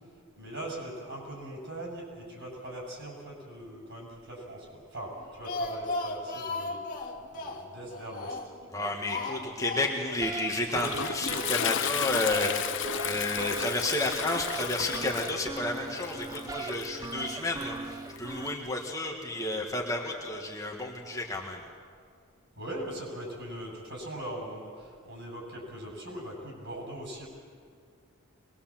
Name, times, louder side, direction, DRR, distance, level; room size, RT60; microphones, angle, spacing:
voice 1, 0.4-8.9 9.4-9.6 11.0-11.5 22.6-27.3, right 1 dB, 55° right, 0 dB, 7.3 m, -41 dB
Speech, 5.1-8.7 9.1-10.2 10.5-10.6 10.9-11.0, left 2 dB, 40° left, 2.0 m, -36 dB
voice 2, 8.7-21.6, left 2 dB, 15° left, -1 dB, 1.8 m, -31 dB
sound 1, 10.2-18.6, right 4 dB, 15° right, 0.6 m, -40 dB
Toilet flush, 10.3-18.5, left 9 dB, 55° left, 0.7 m, -34 dB
23.0 x 21.5 x 7.5 m, 2.1 s
head